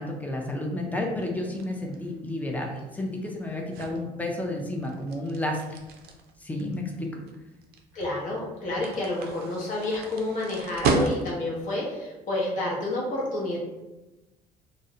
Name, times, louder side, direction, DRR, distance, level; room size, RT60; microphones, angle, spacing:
voice 1, 0.0-5.8 6.4-7.1 8.8-8.9, left 1 dB, 10° left, 1 dB, 0.4 m, -31 dB
sound 1, 1.2-11.6, right 3 dB, 70° right, 0.4 m, -34 dB
voice 2, 7.9-13.6, left 2 dB, 50° left, -3 dB, 0.7 m, -29 dB
2.5 x 2.0 x 2.7 m, 1.1 s
cardioid pair, 110°, 17 cm